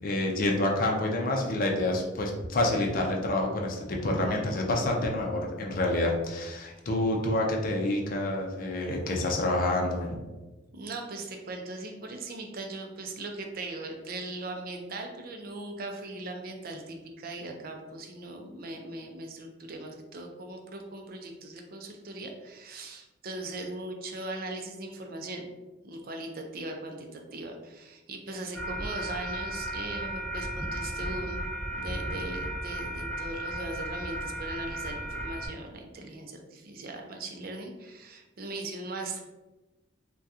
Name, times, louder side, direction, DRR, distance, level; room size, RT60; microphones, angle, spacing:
voice 1, 0.0-10.2, left 1 dB, 50° left, 0 dB, 0.5 m, -28 dB
voice 2, 10.7-25.5 25.8-31.4 31.8-39.2, right 2 dB, 55° right, 3 dB, 0.5 m, -39 dB
sound 1, 28.5-35.5, right 1 dB, ahead, 1.0 m, -35 dB
2.8 x 2.3 x 3.5 m, 1.1 s
head